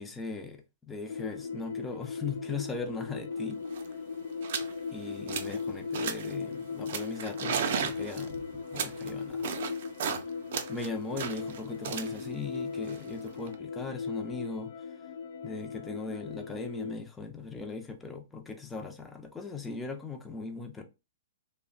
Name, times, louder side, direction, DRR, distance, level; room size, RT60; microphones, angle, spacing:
voice 1, 0.0-3.6 4.9-9.5 10.7-14.7 15.4-20.8, left 3 dB, 10° left, 0.5 m, -39 dB
sound 1, 1.1-16.9, left 5 dB, 70° left, 0.3 m, -38 dB
sound 2, 3.4-3.5 3.6-3.9 4.4-4.7 5.1-5.6 5.9-6.4 6.9-10.2 10.5-13.5, right 7 dB, 60° right, 0.5 m, -35 dB
2.7 x 2.1 x 2.4 m
hypercardioid pair, 145°, 0 cm